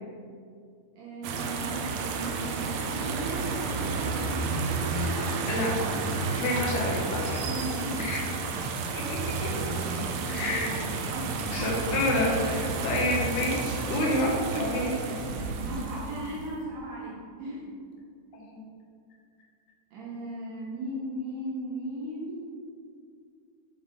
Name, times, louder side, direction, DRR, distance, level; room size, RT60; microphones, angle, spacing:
voice 1, 1.0-2.5 2.9-4.4 4.9-5.5 7.3-8.2 8.5-8.7 9.7-10.7 11.1-11.5 14.6-17.7 19.9-22.4, right 1 dB, 65° right, -6 dB, 2.5 m, -38 dB
sound 1, 1.2-16.5, right 4 dB, 90° right, 2.0 m, -31 dB
voice 2, 6.3-7.4 8.0-8.2 8.9-9.5 10.3-10.7 11.5-15.2 18.3-18.6, left 1 dB, 75° left, -2 dB, 3.0 m, -29 dB
7.1 x 6.4 x 3.7 m, 2.2 s
omnidirectional pair, 4.7 m